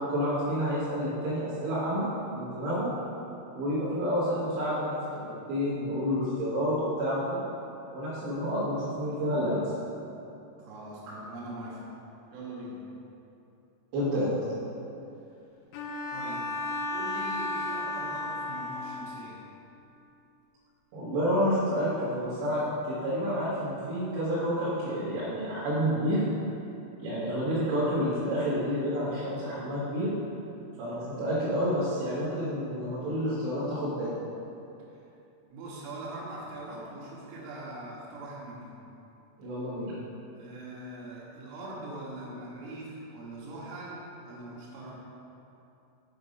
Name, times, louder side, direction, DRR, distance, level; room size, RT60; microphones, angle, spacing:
voice 1, 0.1-2.9 3.5-7.5 7.9-9.7 11.1-11.2 13.9-14.4 20.9-26.2 27.0-30.1 30.8-34.1 39.4-39.9, equal, 65° right, -12 dB, 3.8 m, -29 dB
voice 2, 10.6-11.9 12.3-12.8 16.1-19.5 34.9-35.1 35.5-38.8 40.4-44.9, right 1 dB, 80° right, -5 dB, 4.1 m, -42 dB
Bowed string instrument, 15.7-19.4, left 2 dB, 85° left, 2.6 m, -34 dB
9.3 x 5.7 x 5.3 m, 2.8 s
omnidirectional pair, 5.9 m